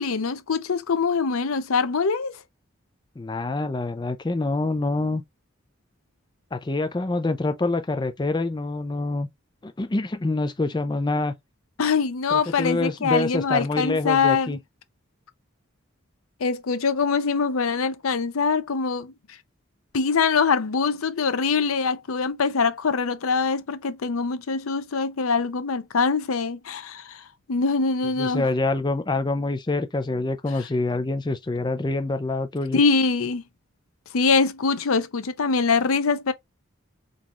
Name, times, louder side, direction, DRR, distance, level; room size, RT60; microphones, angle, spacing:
voice 1, 0.0-2.4 11.8-14.6 16.4-19.1 19.9-28.5 32.7-33.4 34.1-36.3, left 5 dB, 85° left, 0.6 m, -23 dB
voice 2, 3.2-5.2 6.5-9.3 9.6-11.3 12.3-14.6 28.2-32.8, left 2 dB, 20° left, 0.4 m, -26 dB
3.9 x 3.6 x 2.9 m
head